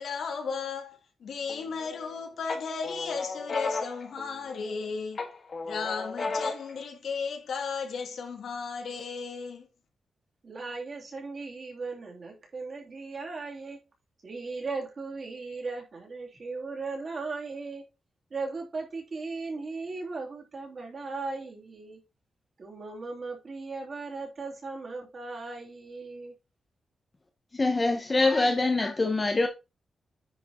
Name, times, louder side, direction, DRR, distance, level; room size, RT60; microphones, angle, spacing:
voice 1, 0.0-5.2 5.6-9.7, left 5 dB, 85° left, 2.3 m, -35 dB
sound 1, 1.5-2.1 2.5-4.8 5.2-6.8, left 3 dB, 40° left, 2.1 m, -34 dB
voice 2, 10.4-13.9 14.2-17.9 18.3-22.0 22.6-26.3, right 3 dB, 40° right, 3.2 m, -37 dB
voice 3, 27.5-29.5, left 2 dB, 25° left, 1.0 m, -24 dB
10.0 x 4.8 x 4.4 m
wide cardioid pair, 165°, 0 cm